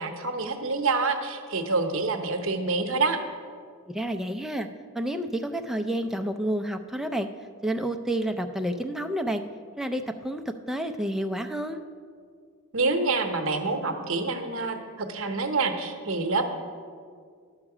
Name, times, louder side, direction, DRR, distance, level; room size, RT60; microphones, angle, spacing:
voice 1, 0.0-3.2 12.7-16.5, right 3 dB, 65° right, 5 dB, 0.8 m, -27 dB
voice 2, 3.9-4.7 4.9-7.3 7.6-9.4 9.8-11.8, right 1 dB, ahead, 6 dB, 0.4 m, -29 dB
11.0 x 7.3 x 4.9 m, 2.1 s
head